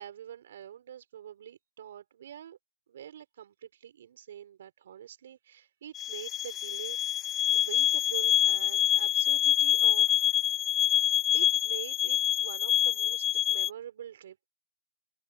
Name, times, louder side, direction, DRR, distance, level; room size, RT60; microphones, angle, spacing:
voice 1, 0.0-2.6 2.9-7.0 7.5-10.3 11.3-14.5, right 10 dB, 45° right, 5.2 m, -45 dB
sound 1, 5.9-13.7, left 11 dB, 10° left, 0.4 m, -26 dB
open air
hypercardioid pair, 160°, 0 cm